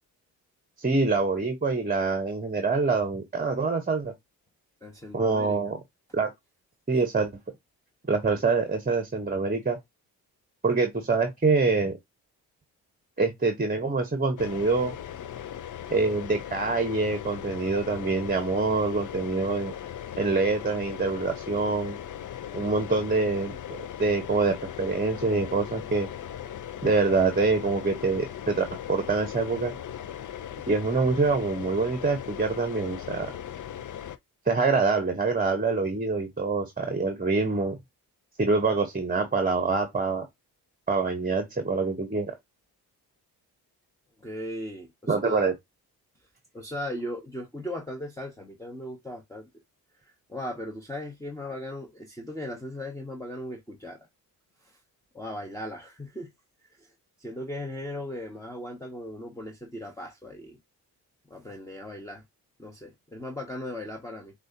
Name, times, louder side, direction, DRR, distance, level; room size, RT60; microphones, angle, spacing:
voice 1, 0.8-4.1 5.1-5.8 6.1-6.3 6.9-7.3 8.1-9.8 10.6-12.0 13.2-14.9 15.9-19.7 20.2-22.0 22.5-26.1 26.8-29.7 30.7-33.3 34.4-37.8 38.4-40.3 40.9-42.3 45.1-45.5, right 3 dB, 20° right, 1.1 m, -25 dB
voice 2, 4.8-5.7 44.2-45.5 46.5-49.5 49.9-54.0 54.6-54.8 55.1-56.3 56.7-56.9 57.2-60.6 61.3-62.2 62.6-64.3, left 1 dB, 5° left, 1.2 m, -38 dB
sound 1, 14.4-34.2, left 10 dB, 45° left, 0.6 m, -38 dB
6.1 x 2.6 x 2.8 m
hypercardioid pair, 45°, 45 cm